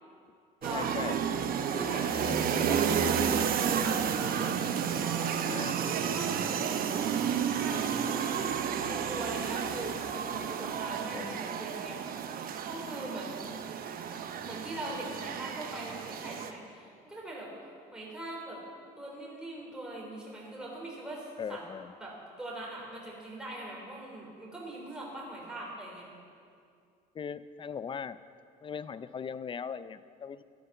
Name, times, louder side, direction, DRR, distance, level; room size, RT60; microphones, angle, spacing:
sound 1, 0.6-16.5, right 7 dB, 60° right, 1.0 m, -31 dB
voice 1, 0.7-1.2 2.2-2.8 5.5-5.8 11.1-11.4 21.4-21.9 27.1-28.2 28.6-30.4, left 6 dB, 30° left, 15 dB, 0.5 m, -39 dB
voice 2, 1.7-5.3 5.8-6.7 7.1-8.4 8.7-12.0 12.7-13.5 14.4-17.5 17.9-18.6 19.0-21.6 22.0-26.1, right 1 dB, 5° right, -4 dB, 3.7 m, -42 dB
13.0 x 10.5 x 6.7 m, 2.3 s
cardioid pair, 110°, 17 cm